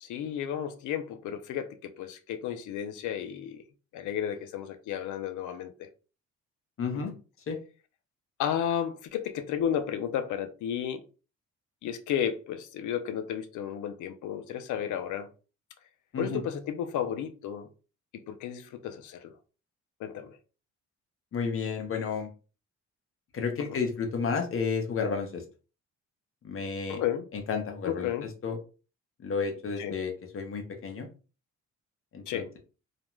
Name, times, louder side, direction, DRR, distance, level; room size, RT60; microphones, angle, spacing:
voice 1, 0.0-3.6 3.9-5.9 6.9-7.0 8.4-11.0 11.8-15.3 16.2-17.7 18.3-19.3 20.0-20.4 23.7-23.8 26.9-27.3 27.9-28.3 29.8-30.0 32.3-32.5, left 9 dB, 75° left, 0.5 m, -33 dB
voice 2, 6.8-7.1 7.5-7.6 16.1-16.4 21.3-22.3 23.3-25.4 26.4-27.0 27.3-28.6 29.2-31.1 32.1-32.6, left 5 dB, 45° left, 0.7 m, -32 dB
2.5 x 2.1 x 3.0 m
cardioid pair, 90°, 30 cm